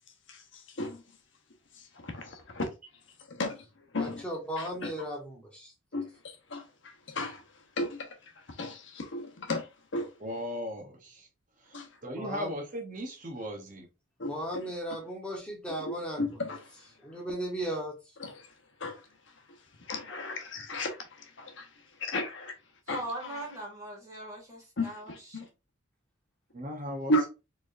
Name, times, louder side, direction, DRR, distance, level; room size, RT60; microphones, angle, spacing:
voice 1, 0.3-1.0 1.7-2.7 3.3-4.3 4.6-4.9 5.9-10.1 11.7-11.9 14.2-14.7 15.8-17.2 18.2-22.6 22.9-23.5 24.8-25.4 27.1-27.3, left 1 dB, 65° left, 0.9 m, -35 dB
voice 2, 4.0-5.7 12.2-12.5 14.3-16.2 17.0-17.9, equal, 5° left, 1.0 m, -36 dB
voice 3, 10.2-11.3 11.7-13.9 26.5-27.1, left 1 dB, 40° right, 0.8 m, -37 dB
voice 4, 22.9-25.5, right 1 dB, 15° right, 2.0 m, -40 dB
4.3 x 3.4 x 2.5 m
head